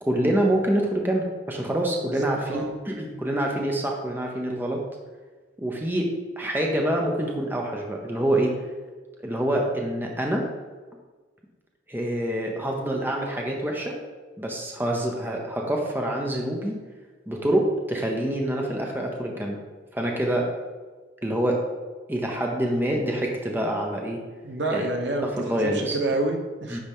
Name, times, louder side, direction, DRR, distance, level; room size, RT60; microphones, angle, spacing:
voice 1, 0.0-4.8 5.6-6.1 6.4-8.5 9.2-10.4 11.9-14.0 14.4-16.8 17.3-19.6 19.9-20.5 21.2-21.6 22.1-24.2 24.7-24.8 25.2-26.0 26.7-26.8, right 1 dB, 10° right, 0 dB, 0.7 m, -26 dB
voice 2, 2.0-2.7 24.4-26.8, right 2 dB, 75° right, 3 dB, 0.9 m, -28 dB
9.9 x 3.9 x 3.6 m, 1.3 s
head